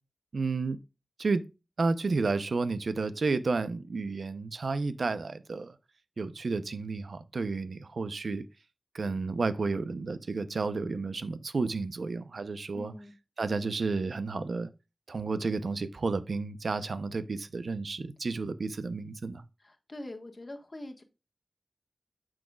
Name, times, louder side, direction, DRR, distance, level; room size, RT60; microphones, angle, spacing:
voice 1, 0.3-0.8 1.2-1.5 1.8-5.7 6.2-8.4 8.9-12.9 13.4-14.7 15.1-19.4, right 4 dB, 80° right, 0.6 m, -31 dB
voice 2, 12.7-13.1 19.6-21.0, left 1 dB, 40° left, 1.4 m, -43 dB
8.7 x 6.3 x 2.3 m
wide cardioid pair, 65°, 0 cm